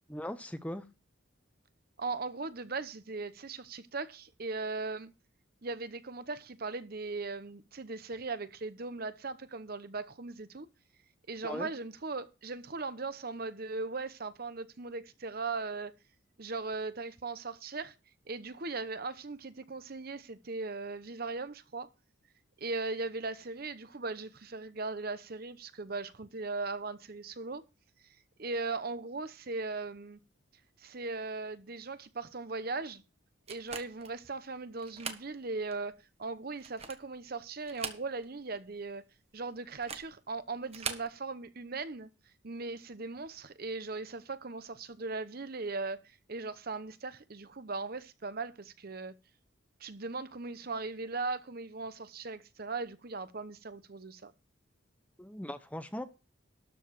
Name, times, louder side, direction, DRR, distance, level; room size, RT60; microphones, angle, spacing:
voice 1, 0.1-0.9 11.4-11.7 55.2-56.0, left 1 dB, 5° left, 0.7 m, -39 dB
voice 2, 2.0-5.1 5.6-10.7 11.3-15.9 16.4-17.9 18.3-21.9 22.6-27.6 28.4-30.2 30.8-33.0 33.5-39.0 39.3-42.1 42.4-49.1 49.8-54.3, right 3 dB, 50° right, 0.9 m, -38 dB
sound 1, 33.5-34.2 34.8-35.3 35.7-35.8 36.5-37.1 37.6-38.4 38.7-38.8 39.7-40.1 40.7-41.1, right 6 dB, 30° right, 1.2 m, -41 dB
13.0 x 4.7 x 7.5 m
head